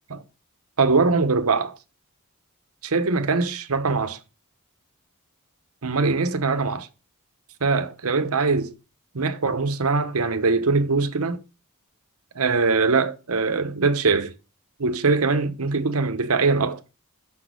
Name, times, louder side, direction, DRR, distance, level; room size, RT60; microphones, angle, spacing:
voice 1, 0.8-1.8 2.8-4.2 5.8-6.9 7.6-8.7 9.1-11.4 12.3-14.3 14.8-16.8, right 4 dB, 75° right, 0.9 m, -22 dB
6.2 x 6.0 x 6.1 m
head